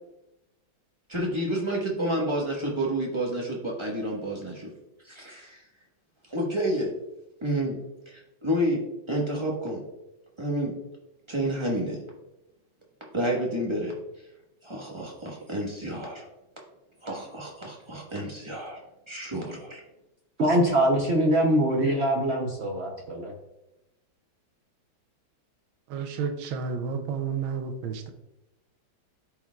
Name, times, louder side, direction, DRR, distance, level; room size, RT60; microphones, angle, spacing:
voice 1, 1.1-4.7 5.0-5.6 6.3-6.9 7.4-7.8 8.1-9.8 10.4-10.7 11.3-12.0 13.1-13.9 14.6-16.3 17.0-18.8 19.1-19.8, right 1 dB, 20° right, -3 dB, 1.1 m, -29 dB
voice 2, 20.4-23.3, right 1 dB, 60° right, 0 dB, 0.7 m, -23 dB
voice 3, 25.9-28.1, right 6 dB, 85° right, 7 dB, 1.5 m, -31 dB
13.0 x 4.4 x 2.4 m, 0.92 s
omnidirectional pair, 2.1 m